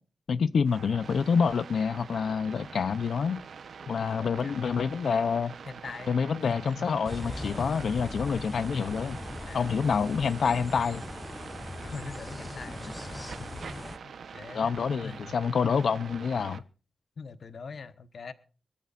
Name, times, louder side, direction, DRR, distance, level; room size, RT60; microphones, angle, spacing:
voice 1, 0.3-3.4 3.9-5.5 6.1-9.2 9.5-11.0 14.5-16.6, left 6 dB, 80° left, 15 dB, 0.7 m, -27 dB
sound 1, 0.6-16.6, right 6 dB, 85° right, 0.9 m, -44 dB
voice 2, 2.5-3.2 4.0-4.7 5.6-6.2 6.5-7.3 9.4-9.8 11.8-13.6 14.0-15.4 15.7-16.0 17.2-18.3, left 5 dB, 60° left, 12 dB, 1.1 m, -43 dB
sound 2, 7.0-14.0, left 2 dB, 20° left, 0.6 m, -40 dB
24.5 x 14.0 x 2.5 m, 0.39 s
wide cardioid pair, 165°, 0 cm